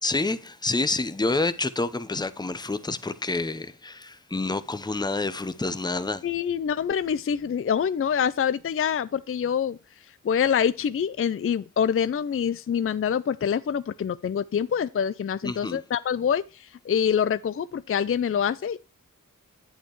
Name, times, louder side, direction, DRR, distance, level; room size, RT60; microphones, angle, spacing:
voice 1, 0.0-6.2 15.4-15.8, left 3 dB, 15° left, 0.7 m, -28 dB
voice 2, 6.2-9.8 10.2-18.8, left 8 dB, 45° left, 0.4 m, -25 dB
8.5 x 8.0 x 3.0 m
wide cardioid pair, 55°, 32 cm